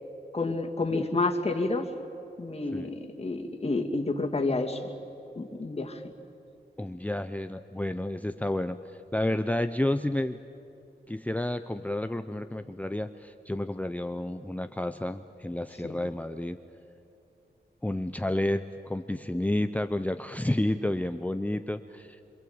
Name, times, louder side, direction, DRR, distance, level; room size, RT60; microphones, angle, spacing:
voice 1, 0.3-1.9 2.4-4.8 5.4-6.0 15.8-16.0, left 3 dB, 35° left, 3 dB, 2.5 m, -29 dB
voice 2, 6.8-8.8 9.1-10.4 11.1-16.6 17.8-22.2, left 1 dB, 10° left, 9 dB, 0.8 m, -30 dB
26.0 x 26.0 x 8.8 m, 2.7 s
cardioid pair, 75°, 18 cm